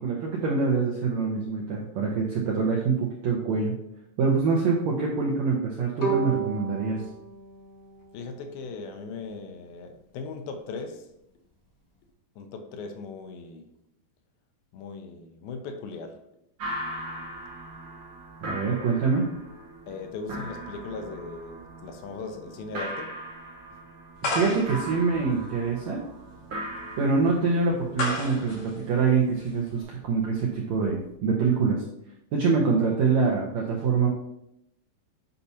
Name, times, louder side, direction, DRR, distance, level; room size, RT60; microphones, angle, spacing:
voice 1, 0.0-3.7 4.2-7.0 18.4-19.3 24.3-26.0 27.0-31.8 32.3-34.1, right 4 dB, 80° right, 1.6 m, -25 dB
Bowed string instrument, 6.0-9.1, right 6 dB, 10° left, 1.4 m, -33 dB
voice 2, 8.1-11.1 12.4-13.7 14.7-16.2 19.9-23.2, left 4 dB, 80° left, 2.4 m, -38 dB
sound 1, 16.6-31.1, right 1 dB, 60° right, 1.4 m, -40 dB
sound 2, 24.2-29.8, left 1 dB, 50° left, 2.9 m, -34 dB
8.3 x 5.6 x 2.8 m
omnidirectional pair, 4.3 m